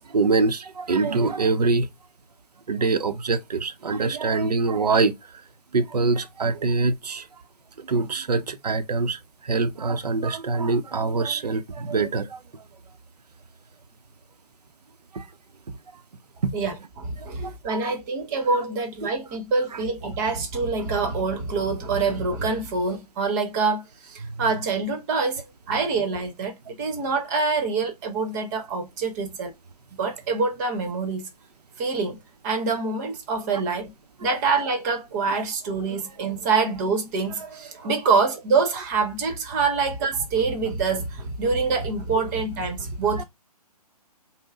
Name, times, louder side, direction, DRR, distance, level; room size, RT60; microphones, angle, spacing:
voice 1, 0.0-1.9 2.7-5.1 5.7-7.3 7.8-12.6 15.1-15.3 16.4-16.5 17.2-18.0 19.0-19.1 19.7-19.8 24.2-24.4 33.5-33.6 34.2-34.3 35.4-35.5 35.9-36.0 43.2-43.3, right 3 dB, 80° right, 0.7 m, -25 dB
voice 2, 16.5-29.5 30.0-31.2 31.8-32.2 32.4-33.9 34.2-43.2, right 4 dB, 30° right, 1.0 m, -25 dB
5.5 x 2.1 x 3.5 m
hypercardioid pair, 140°, 20 cm